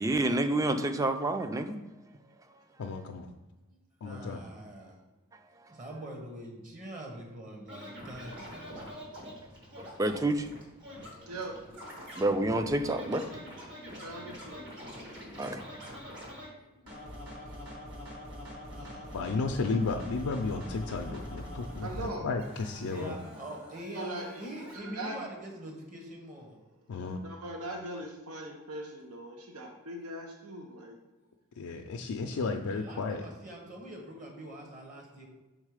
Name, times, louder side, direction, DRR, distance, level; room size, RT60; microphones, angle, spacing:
voice 1, 0.0-1.8 9.8-10.5 12.2-13.4 15.4-15.6, right 2 dB, 15° right, 8 dB, 0.3 m, -29 dB
voice 2, 2.8-3.3 4.0-4.4 19.1-23.2 26.9-27.2 31.6-33.2, left 4 dB, 85° left, 3 dB, 0.4 m, -33 dB
voice 3, 4.0-5.0 5.7-8.9 14.2-14.4 15.1-15.3 15.6-15.8 16.5-17.6 18.7-19.6 22.9-26.6 32.3-35.3, right 1 dB, 35° right, 0 dB, 1.2 m, -45 dB
Scratching (performance technique), 7.7-16.5 16.9-22.1 22.4-24.7, equal, 55° right, 1.7 m, -44 dB
voice 4, 11.3-11.6 14.0-15.0 21.8-22.3 23.9-24.3 24.7-25.2 27.2-31.0, right 1 dB, 85° right, 2 dB, 0.7 m, -40 dB
6.4 x 3.7 x 4.9 m, 1.1 s
head